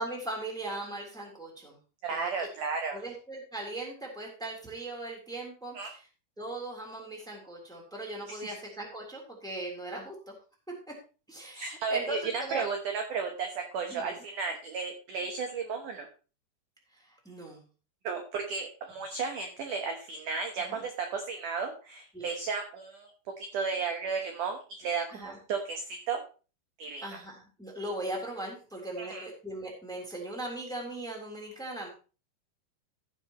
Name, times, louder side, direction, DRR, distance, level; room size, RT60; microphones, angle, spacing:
voice 1, 0.0-1.8 2.1-2.5 2.9-6.1 6.4-10.3 11.3-12.6 13.9-14.2 16.9-17.6 20.6-20.8 22.1-22.3 25.1-25.4 27.0-31.9, right 2 dB, ahead, -1 dB, 2.7 m, -39 dB
voice 2, 2.0-3.0 5.7-5.9 8.3-8.4 11.5-16.1 18.0-23.1 23.4-26.2 26.8-27.1 29.0-29.3, right 5 dB, 70° right, 4 dB, 2.0 m, -34 dB
15.0 x 8.7 x 3.0 m, 0.35 s
omnidirectional pair, 5.1 m